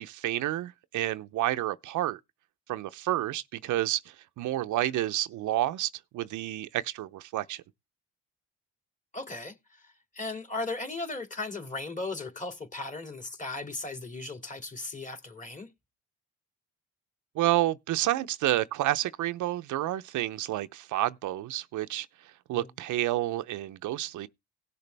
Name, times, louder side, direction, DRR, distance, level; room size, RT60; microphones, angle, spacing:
voice 1, 0.0-2.2 2.7-4.0 4.4-7.6 17.4-22.1 22.5-24.3, right 15 dB, 75° right, 0.7 m, -29 dB
voice 2, 9.1-9.5 10.1-15.7 22.5-22.7, left 3 dB, 25° left, 2.6 m, -36 dB
17.5 x 6.8 x 3.4 m
cardioid pair, 90°, 30 cm